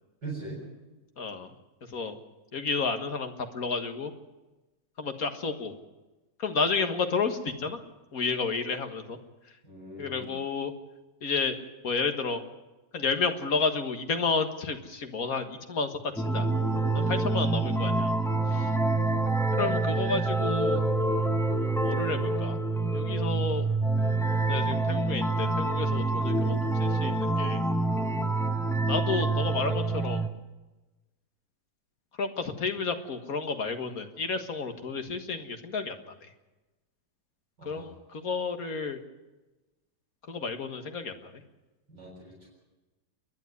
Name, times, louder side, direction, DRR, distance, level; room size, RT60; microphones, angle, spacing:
voice 1, 0.2-0.6 9.6-10.3 16.7-17.0 18.4-18.6 37.6-37.9 41.9-42.5, right 2 dB, 70° right, -3 dB, 7.5 m, -41 dB
voice 2, 1.2-1.5 1.9-2.2 2.5-4.1 5.0-5.7 6.4-7.8 8.1-9.2 10.0-10.7 11.2-11.6 11.8-12.4 12.9-16.5 16.9-18.1 18.5-18.7 19.6-20.8 21.8-22.6 22.9-23.7 24.5-27.6 28.9-30.2 32.2-36.1 37.7-39.0 40.3-41.4, left 4 dB, 55° left, 7 dB, 2.0 m, -31 dB
sound 1, 16.2-30.3, right 2 dB, ahead, 0.7 m, -27 dB
29.5 x 10.5 x 9.6 m, 1.1 s
omnidirectional pair, 1.9 m